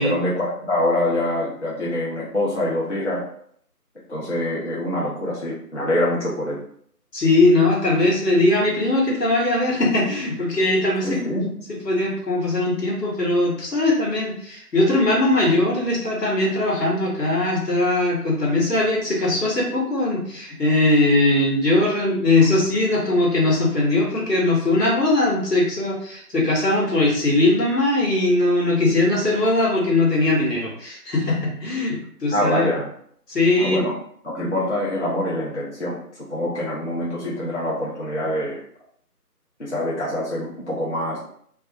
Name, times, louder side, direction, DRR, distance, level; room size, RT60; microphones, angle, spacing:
voice 1, 0.0-3.2 4.1-6.6 11.0-11.5 32.3-32.9 33.6-34.0 34.2-36.0 36.3-38.6 39.6-41.2, left 1 dB, 50° left, -7 dB, 0.5 m, -25 dB
voice 2, 7.1-32.7 33.3-33.8, left 2 dB, 85° left, -4 dB, 1.2 m, -20 dB
2.3 x 2.0 x 2.7 m, 0.64 s
figure-of-eight pair, 175°, 47 cm